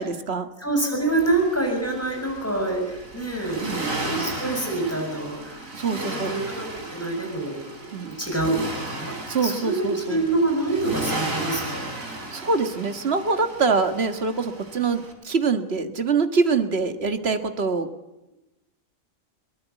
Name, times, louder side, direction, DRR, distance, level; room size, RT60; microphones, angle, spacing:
voice 1, 0.0-0.5 3.6-3.8 5.7-6.3 7.9-8.1 9.3-10.2 12.3-17.9, right 4 dB, 50° right, 8 dB, 1.9 m, -24 dB
voice 2, 0.6-8.6 8.9-9.1 9.4-11.9, right 2 dB, 10° left, 2 dB, 6.8 m, -26 dB
Accelerating revving vroom, 1.1-15.1, right 2 dB, 70° right, 4.0 m, -35 dB
23.5 x 19.5 x 8.3 m, 0.98 s
omnidirectional pair, 1.4 m